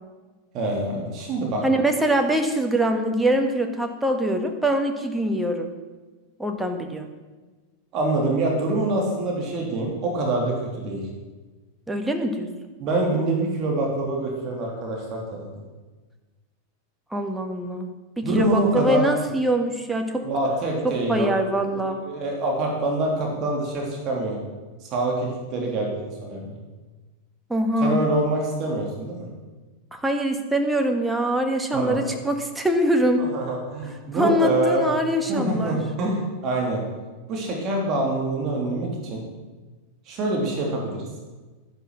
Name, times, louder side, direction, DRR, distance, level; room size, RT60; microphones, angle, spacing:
voice 1, 0.5-1.6 7.9-10.5 10.8-11.0 12.8-15.5 18.2-19.0 20.2-21.3 21.7-24.4 24.9-26.6 27.8-29.3 31.7-32.0 33.3-34.9 35.3-36.8 37.3-39.2 40.1-41.0, right 2 dB, 35° right, -1 dB, 3.2 m, -25 dB
voice 2, 1.6-5.7 6.4-7.1 11.9-12.5 17.1-17.9 18.2-20.2 20.8-22.0 27.5-28.0 29.9-33.2 34.1-35.8, right 1 dB, 5° right, 4 dB, 1.5 m, -23 dB
11.5 x 10.5 x 6.2 m, 1.3 s
figure-of-eight pair, 90°, 0 cm